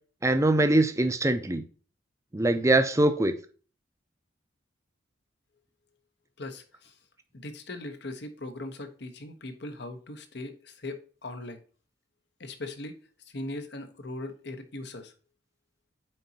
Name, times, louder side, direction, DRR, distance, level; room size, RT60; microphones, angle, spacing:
voice 1, 0.2-1.6 2.3-3.3, right 2 dB, 15° right, 0.6 m, -23 dB
voice 2, 6.4-6.9 7.4-11.6 12.4-13.0 13.3-15.1, left 2 dB, 60° left, 1.0 m, -39 dB
8.9 x 4.1 x 2.8 m
head